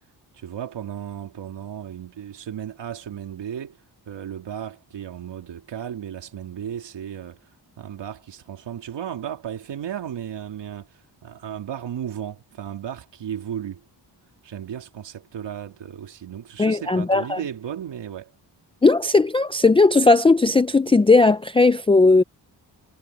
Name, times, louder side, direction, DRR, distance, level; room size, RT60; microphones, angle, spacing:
voice 1, 0.3-13.8 14.4-18.3, right 9 dB, 90° right, 2.6 m, -35 dB
voice 2, 16.6-17.4 18.8-22.2, left 3 dB, 15° left, 0.4 m, -17 dB
wide cardioid pair, 155°, 42 cm